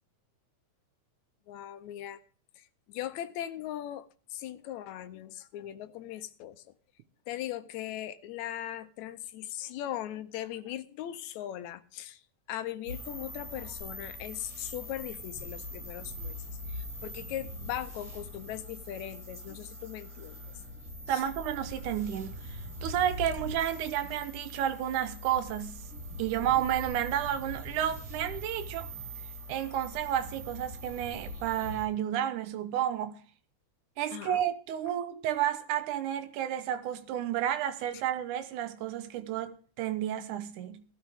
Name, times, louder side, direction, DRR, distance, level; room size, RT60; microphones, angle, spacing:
voice 1, 1.5-2.2 2.6-6.6 7.3-12.2 12.5-20.4 21.1-21.2 34.1-34.4, left 12 dB, 75° left, 2.0 m, -39 dB
sound 1, 12.9-31.9, left 1 dB, 40° right, 7.8 m, -42 dB
voice 2, 21.1-25.8 26.2-28.9 29.5-33.2 34.0-40.8, right 11 dB, 85° right, 2.4 m, -31 dB
18.0 x 12.5 x 3.6 m
omnidirectional pair, 3.4 m